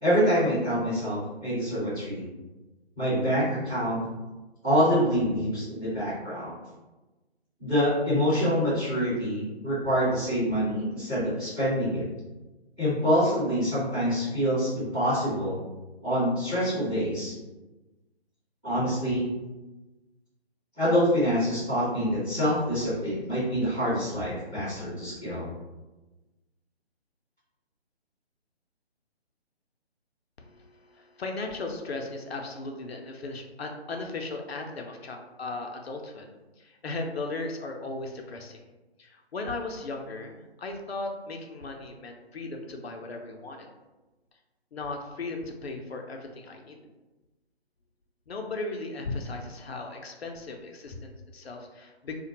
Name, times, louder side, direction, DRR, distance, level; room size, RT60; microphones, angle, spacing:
voice 1, 0.0-2.2 3.0-4.0 4.6-6.5 7.6-12.0 12.8-15.6 16.0-17.3 18.6-19.2 20.8-25.5, equal, 5° right, -15 dB, 0.5 m, -26 dB
voice 2, 30.4-36.3 36.6-38.6 39.0-43.7 44.7-46.8 48.3-52.1, left 3 dB, 70° left, 3 dB, 0.5 m, -37 dB
2.4 x 2.1 x 2.8 m, 1.1 s
figure-of-eight pair, 145°, 33 cm